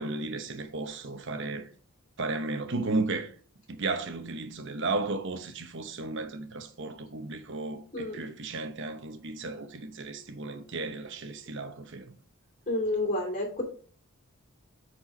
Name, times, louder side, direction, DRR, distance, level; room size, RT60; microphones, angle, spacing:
voice 1, 0.0-1.7 2.2-3.3 3.7-12.1, right 3 dB, 55° right, 0.9 m, -34 dB
voice 2, 12.7-13.6, left 2 dB, 35° left, 2.9 m, -29 dB
8.6 x 4.5 x 3.8 m
head